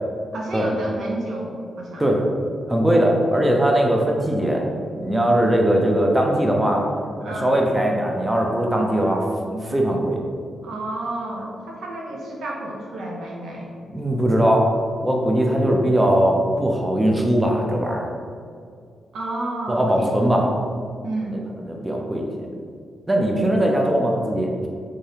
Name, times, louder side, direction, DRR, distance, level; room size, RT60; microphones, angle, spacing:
voice 1, 0.3-2.0 7.2-7.5 10.6-13.7 19.1-20.1 21.0-21.5, right 2 dB, 75° right, -1 dB, 0.7 m, -30 dB
voice 2, 2.7-4.6 5.0-6.8 7.3-10.2 13.9-14.6 15.0-18.1 19.7-20.5 21.3-21.4 21.7-22.3 23.1-24.7, right 1 dB, 15° right, 0 dB, 0.6 m, -20 dB
3.6 x 3.1 x 2.8 m, 2.3 s
cardioid pair, 65°, 0 cm